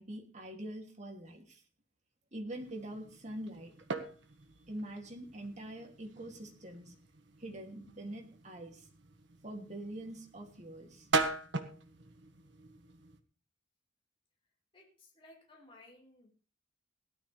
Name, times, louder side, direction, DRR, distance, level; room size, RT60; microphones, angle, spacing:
voice 1, 0.0-1.6 2.3-3.7 4.7-6.9 7.4-8.9 9.4-11.1, right 1 dB, 40° right, 2 dB, 2.8 m, -44 dB
sound 1, 2.5-13.2, right 3 dB, 70° right, 1.6 m, -41 dB
voice 2, 14.7-16.3, left 2 dB, 30° left, -3 dB, 4.2 m, -58 dB
17.5 x 12.5 x 3.4 m, 0.37 s
head